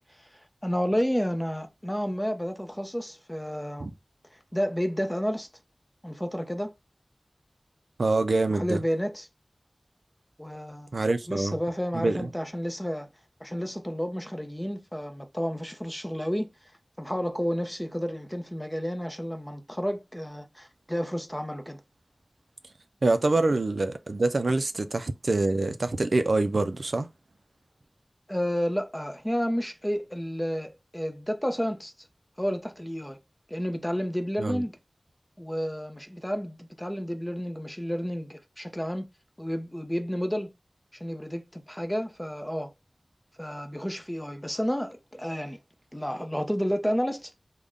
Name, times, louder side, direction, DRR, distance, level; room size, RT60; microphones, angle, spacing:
voice 1, 0.6-3.9 4.3-5.5 6.0-6.7 8.5-9.3 10.4-10.9 11.3-13.1 13.4-16.5 17.0-21.8 28.3-31.9 32.4-33.2 33.5-34.7 35.4-39.1 39.4-40.5 41.0-42.7 43.4-45.6 45.9-47.3, equal, 10° left, 0.6 m, -31 dB
voice 2, 8.0-8.8 10.9-11.6 11.9-12.3 23.0-27.1 34.4-34.6, right 2 dB, 75° right, 0.4 m, -25 dB
3.5 x 2.1 x 3.7 m
wide cardioid pair, 60°, 0 cm